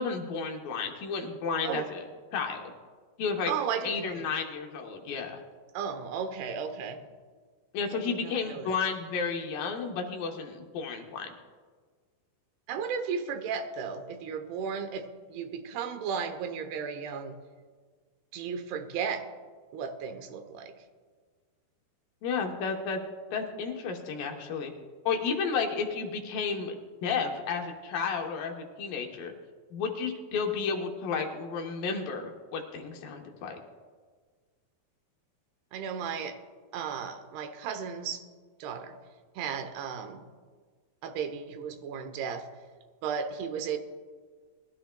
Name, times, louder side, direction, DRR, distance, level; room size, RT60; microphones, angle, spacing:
voice 1, 0.0-2.0 2.3-2.6 3.2-3.5 3.8-5.4 7.7-11.3 22.2-23.0 23.3-24.7 25.1-26.8 27.0-29.3 29.7-33.6, left 5 dB, 70° left, 3 dB, 2.5 m, -32 dB
voice 2, 3.5-4.3 5.7-7.1 7.9-8.7 12.7-17.4 18.3-19.3 19.7-20.7 35.7-36.4 36.7-38.2 38.6-39.0 39.4-40.2 41.0-42.5 43.0-43.8, right 6 dB, 90° right, 7 dB, 2.9 m, -35 dB
21.0 x 12.5 x 2.2 m, 1.5 s
omnidirectional pair, 4.4 m